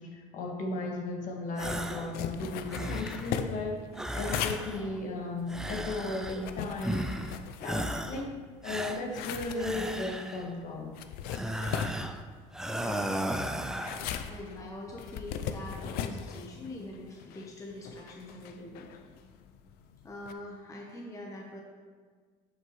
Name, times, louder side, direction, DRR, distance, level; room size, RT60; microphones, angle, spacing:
voice 1, 0.0-3.8 4.1-7.1 7.6-8.3 8.6-10.9, left 2 dB, 50° left, 0 dB, 1.6 m, -35 dB
sound 1, 1.6-2.2 2.5-3.4 3.9-5.0 5.5-6.5 6.8-7.4 7.6-8.3 8.6-10.5 11.3-12.2 12.5-14.1, equal, 5° right, 0.4 m, -35 dB
sound 2, 2.1-8.4 8.7-20.3, left 8 dB, 70° left, 0.5 m, -39 dB
voice 2, 12.7-13.1 13.8-19.0 20.0-21.6, left 1 dB, 20° left, -1 dB, 1.0 m, -44 dB
11.0 x 5.7 x 3.1 m, 1.5 s
cardioid pair, 115°, 16 cm